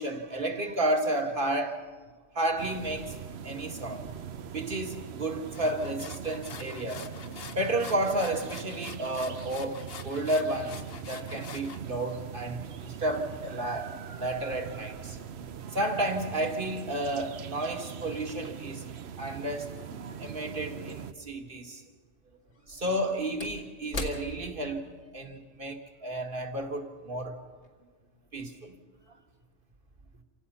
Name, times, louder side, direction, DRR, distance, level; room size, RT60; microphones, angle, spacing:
voice 1, 0.0-1.8 2.3-3.2 3.4-4.1 4.5-7.1 7.6-15.2 15.7-18.9 19.2-21.8 22.7-24.8 25.1-27.4 28.3-28.7, right 1 dB, 50° right, 2.1 m, -32 dB
sound 1, 2.6-21.1, right 8 dB, 70° right, 1.1 m, -41 dB
sound 2, 5.5-11.8, left 6 dB, 60° left, 1.1 m, -46 dB
Slam / Wood, 20.9-21.0 22.5-27.2 27.5-27.7, left 2 dB, 75° left, 2.2 m, -42 dB
28.5 x 17.0 x 5.6 m
omnidirectional pair, 1.2 m